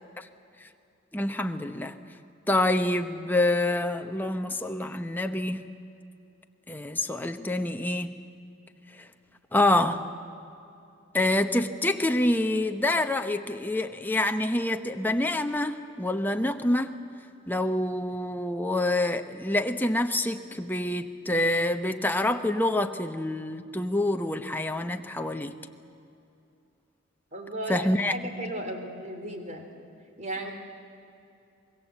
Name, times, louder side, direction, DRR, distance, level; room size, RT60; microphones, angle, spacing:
voice 1, 1.1-2.0 2.5-5.7 6.7-8.1 9.5-10.0 11.1-16.9 17.5-25.6 27.7-28.1, left 1 dB, 10° left, 6 dB, 0.9 m, -26 dB
voice 2, 27.3-29.7 30.2-30.5, right 1 dB, 35° right, 4 dB, 3.3 m, -35 dB
24.5 x 21.5 x 8.1 m, 2.6 s
head